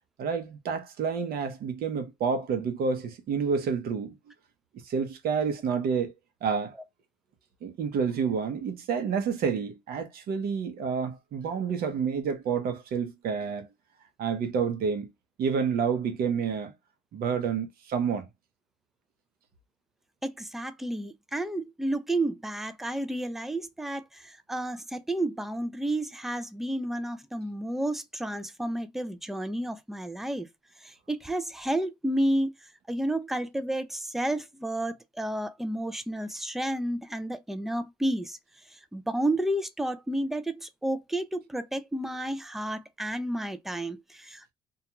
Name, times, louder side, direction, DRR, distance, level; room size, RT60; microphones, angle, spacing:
voice 1, 0.2-4.1 4.8-6.1 6.4-6.7 7.6-13.7 14.2-15.1 15.4-16.7 17.1-18.3, right 6 dB, 65° right, 0.8 m, -29 dB
voice 2, 20.2-30.5 30.8-32.5 32.9-38.4 38.9-44.5, right 1 dB, ahead, 0.3 m, -31 dB
2.3 x 2.3 x 2.8 m
cardioid pair, 110°, 17 cm